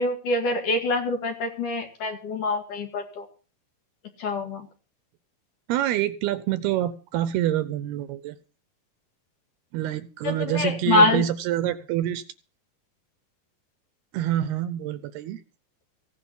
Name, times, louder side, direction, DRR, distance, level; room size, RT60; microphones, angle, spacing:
voice 1, 0.0-3.3 4.2-4.7 10.2-11.2, left 2 dB, 55° left, 5 dB, 3.1 m, -25 dB
voice 2, 5.7-8.4 9.7-12.2 14.1-15.4, right 12 dB, 75° right, 14 dB, 2.7 m, -26 dB
16.5 x 10.5 x 5.5 m, 0.36 s
omnidirectional pair, 5.0 m